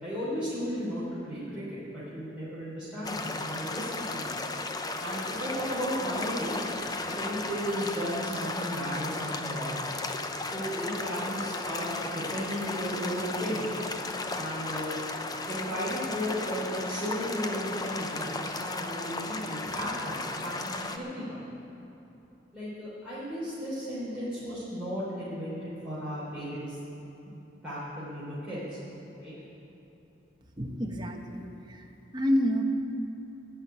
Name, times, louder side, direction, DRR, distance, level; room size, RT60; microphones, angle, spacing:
voice 1, 0.0-4.3 5.0-6.6 7.1-9.8 10.4-13.7 14.3-21.4 22.5-26.8 27.2-27.4 27.6-28.8 29.1-29.3, equal, 5° right, -13 dB, 4.0 m, -35 dB
sound 1, 3.0-21.0, left 3 dB, 20° left, 0.7 m, -35 dB
voice 2, 30.6-31.8 32.1-32.6, equal, 25° right, 2 dB, 1.2 m, -28 dB
17.0 x 6.1 x 9.8 m, 3.0 s
head